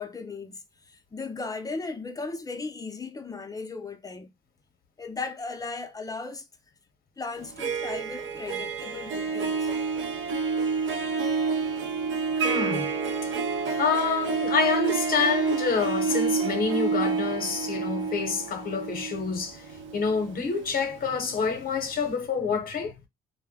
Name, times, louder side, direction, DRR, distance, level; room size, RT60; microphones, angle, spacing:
voice 1, 0.0-4.3 5.0-6.5 7.2-9.7, left 4 dB, 20° left, 0.5 m, -36 dB
Harp, 7.4-21.3, right 5 dB, 80° right, 0.6 m, -29 dB
voice 2, 12.4-12.9 13.8-19.6 19.9-22.9, left 5 dB, 50° left, 0.7 m, -27 dB
2.1 x 2.0 x 3.4 m
cardioid pair, 90°, 20 cm